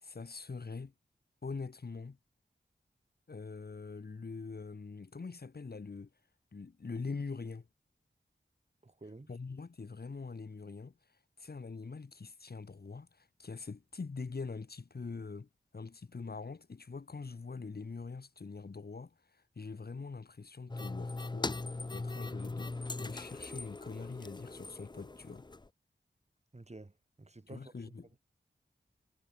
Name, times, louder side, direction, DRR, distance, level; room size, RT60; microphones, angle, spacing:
voice 1, 0.0-0.9 1.4-2.2 3.3-6.1 6.5-7.7 9.3-25.4 27.5-28.1, left 4 dB, 55° left, 1.5 m, -44 dB
voice 2, 8.8-9.3 26.5-27.9, right 2 dB, 35° right, 4.4 m, -51 dB
sound 1, 20.7-25.7, left 3 dB, 25° left, 0.6 m, -40 dB
wide cardioid pair, 55°, 19 cm